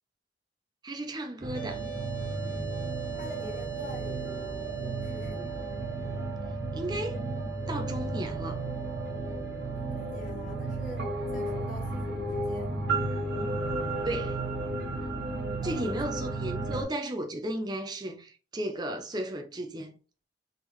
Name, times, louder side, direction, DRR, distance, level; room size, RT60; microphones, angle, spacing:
voice 1, 0.8-1.8 6.7-7.2 7.7-8.6 14.0-14.4 15.6-19.9, right 1 dB, 25° right, 0.5 m, -34 dB
sound 1, 1.4-16.8, right 2 dB, 85° right, 1.6 m, -33 dB
sound 2, 1.5-11.6, right 10 dB, 15° left, 1.5 m, -40 dB
voice 2, 3.1-5.6 9.9-11.1 11.3-12.8 15.6-16.0, left 1 dB, 45° left, 1.4 m, -45 dB
3.5 x 3.3 x 3.0 m
head